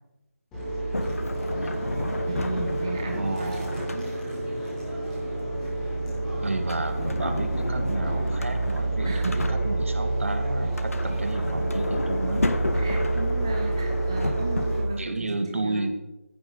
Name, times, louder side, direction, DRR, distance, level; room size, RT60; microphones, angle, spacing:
sound 1, 0.5-14.8, right 2 dB, 5° left, 2.2 m, -28 dB
Sliding door, 0.9-4.5 6.5-10.1 10.6-15.0, left 2 dB, 70° left, 1.4 m, -33 dB
voice 1, 1.5-2.2 3.1-3.8 6.4-12.5 15.0-15.9, right 2 dB, 60° right, 6 dB, 2.0 m, -32 dB
voice 2, 2.3-4.1 9.0-9.5 12.7-15.8, right 3 dB, 20° right, 1 dB, 0.8 m, -35 dB
15.5 x 11.0 x 4.0 m, 1.0 s
figure-of-eight pair, 175°, 8 cm